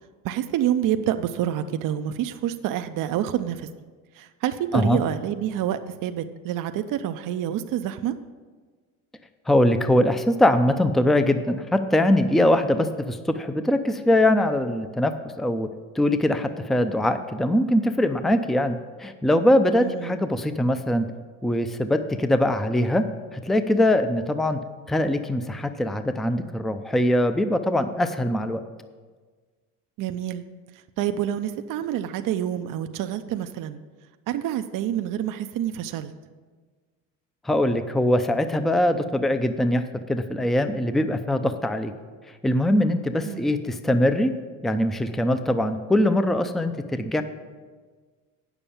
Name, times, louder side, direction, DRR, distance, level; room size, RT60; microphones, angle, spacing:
voice 1, 0.2-3.7 4.1-8.2 19.8-20.2 30.0-30.4 31.0-33.8 34.3-36.1 43.2-43.5, right 11 dB, 55° right, 8 dB, 0.6 m, -27 dB
voice 2, 9.5-15.7 15.9-21.1 21.4-23.0 23.3-24.6 24.9-28.6 37.4-39.8 40.1-41.9 42.4-44.3 44.6-47.2, left 1 dB, ahead, 9 dB, 0.5 m, -22 dB
8.9 x 7.1 x 7.0 m, 1.4 s
supercardioid pair, 95°, 38 cm